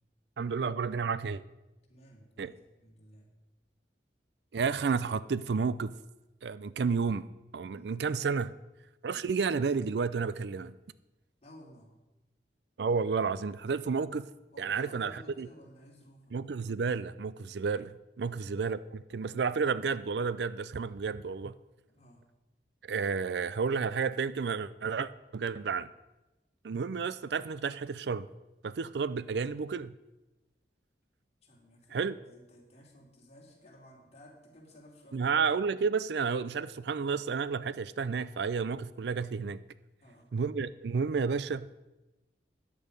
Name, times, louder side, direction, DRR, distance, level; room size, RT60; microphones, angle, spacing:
voice 1, 0.4-1.4 2.4-2.5 4.5-6.0 6.4-7.3 7.5-8.5 9.0-10.7 12.8-14.3 14.6-15.5 16.3-21.5 22.8-25.9 26.6-28.3 28.6-29.9 31.9-32.1 35.1-39.6 40.3-41.7, right 5 dB, 70° right, 17 dB, 0.4 m, -31 dB
voice 2, 1.8-3.3 7.7-7.9 11.4-11.9 14.5-16.4 18.2-18.5 21.9-22.2 31.4-32.0 32.2-35.3 40.0-40.3, equal, 35° left, -1 dB, 3.0 m, -55 dB
13.5 x 10.0 x 5.3 m, 1.0 s
head